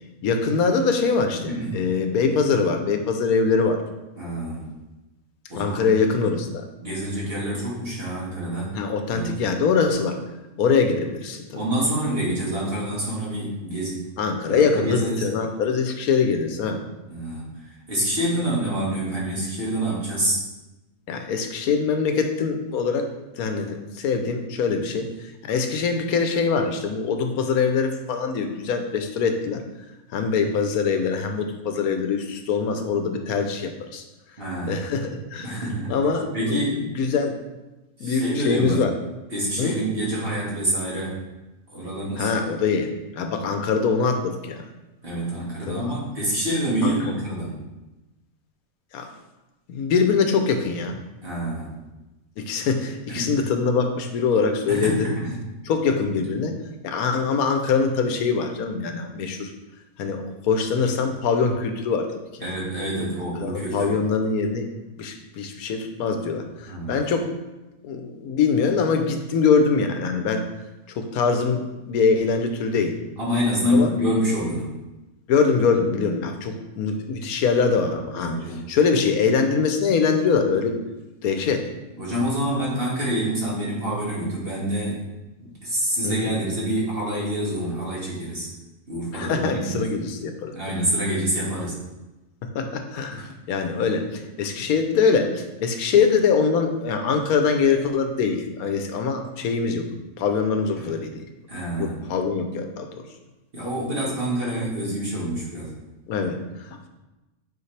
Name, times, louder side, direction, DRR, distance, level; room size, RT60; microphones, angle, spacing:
voice 1, 0.2-3.8 5.5-6.7 8.7-10.2 10.6-11.6 14.2-16.8 21.1-23.1 23.4-29.6 30.1-34.0 34.7-35.6 35.9-37.4 38.0-38.9 39.6-39.8 42.2-44.7 45.7-45.8 46.8-47.1 48.9-49.1 49.7-51.0 52.4-55.1 55.7-56.6 56.8-59.5 60.0-62.5 63.4-64.7 65.0-67.3 67.8-70.5 70.9-73.0 73.7-73.9 75.3-78.4 78.7-80.8 81.2-81.7 86.0-86.3 89.1-90.6 92.5-99.9 100.2-101.2 101.8-103.0 106.1-106.9, left 5 dB, 90° left, 6 dB, 1.2 m, -23 dB
voice 2, 4.2-4.7 5.5-5.9 6.8-8.8 9.1-9.4 11.5-14.1 14.5-15.3 17.1-20.5 34.4-34.8 35.4-35.9 36.3-36.8 38.0-38.8 39.3-41.2 41.7-42.3 45.0-47.5 51.2-51.7 53.1-53.3 54.7-55.4 62.4-63.9 66.6-67.0 73.2-74.7 78.1-78.6 82.0-85.0 85.4-88.5 88.9-89.9 90.5-91.8 100.8-100.9 101.5-102.0 103.5-105.7, right 1 dB, 40° right, -6 dB, 2.1 m, -26 dB
8.2 x 4.4 x 3.3 m, 1.0 s
omnidirectional pair, 1.5 m